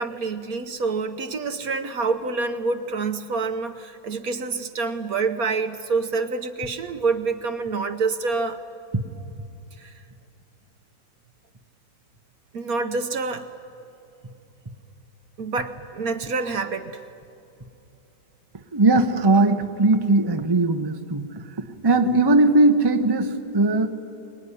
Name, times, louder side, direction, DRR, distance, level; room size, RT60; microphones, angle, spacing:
voice 1, 0.0-8.6 9.8-9.9 12.5-13.5 15.4-16.9, right 4 dB, 55° right, 9 dB, 1.2 m, -27 dB
voice 2, 18.7-21.3 21.8-23.9, right 2 dB, 20° right, 6 dB, 0.7 m, -19 dB
23.5 x 21.0 x 10.0 m, 2.8 s
omnidirectional pair, 2.0 m